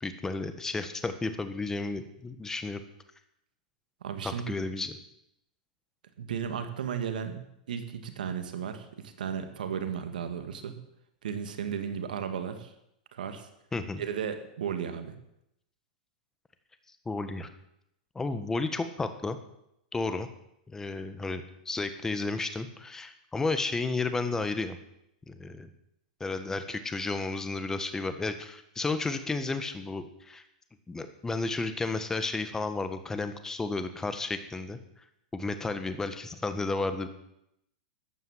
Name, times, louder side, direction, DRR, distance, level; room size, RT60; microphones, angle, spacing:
voice 1, 0.0-2.8 4.2-4.9 13.7-14.0 17.0-17.5 18.1-19.4 19.9-20.3 20.7-24.8 25.3-25.7 26.2-30.4 30.9-34.8 35.3-37.1, left 3 dB, 10° left, 9 dB, 1.6 m, -32 dB
voice 2, 4.0-4.6 6.2-7.4 7.7-10.8 11.2-12.7 13.1-13.5 14.0-15.1, right 7 dB, 80° right, 8 dB, 2.3 m, -34 dB
14.0 x 9.5 x 7.5 m, 0.80 s
hypercardioid pair, 120°, 5 cm